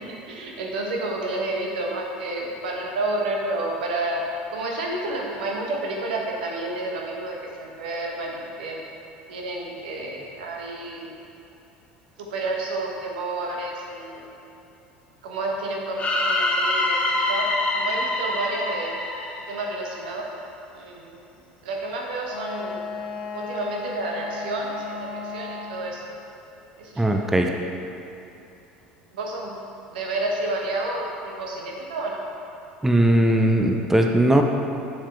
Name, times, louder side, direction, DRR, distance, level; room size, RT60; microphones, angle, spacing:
voice 1, 0.3-4.2 4.5-8.8 9.3-11.1 12.2-14.2 15.2-17.5 17.7-19.0 19.5-20.2 20.7-21.3 21.6-22.8 23.3-26.0 26.8-27.1 29.1-29.6 29.9-32.2, right 2 dB, 70° right, -1 dB, 1.1 m, -30 dB
sound 1, 16.0-20.0, left 2 dB, 25° left, 1.0 m, -25 dB
Wind instrument woodwind instrument, 22.3-26.0, left 4 dB, 70° left, 0.8 m, -35 dB
voice 2, 27.0-27.5 32.8-34.4, right 1 dB, 5° right, 3 dB, 0.5 m, -19 dB
7.2 x 6.8 x 3.5 m, 2.9 s
figure-of-eight pair, 70°, 5 cm